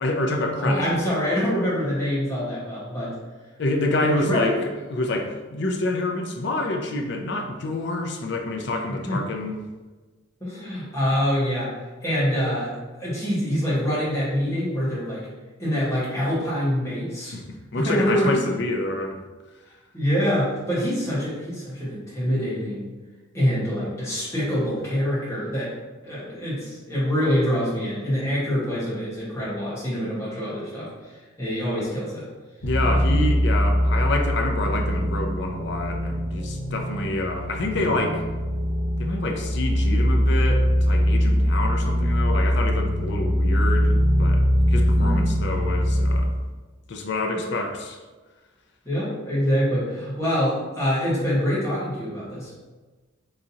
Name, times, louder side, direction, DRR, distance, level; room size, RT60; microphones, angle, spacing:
voice 1, 0.0-0.9 3.6-4.5 4.9-9.6 17.3-17.4 17.7-19.2 32.6-38.2 39.0-46.3 46.9-48.0, left 2 dB, 55° left, 4 dB, 0.5 m, -27 dB
voice 2, 0.6-3.1 4.3-4.5 9.0-9.2 10.4-15.3 15.6-17.3 17.7-18.4 19.9-22.9 23.3-25.7 26.0-31.1 31.4-32.3 44.9-45.2 48.8-52.5, equal, 15° left, -9 dB, 1.4 m, -25 dB
sound 1, 32.6-46.2, equal, 40° right, 1.5 m, -22 dB
4.0 x 3.7 x 2.8 m, 1.3 s
head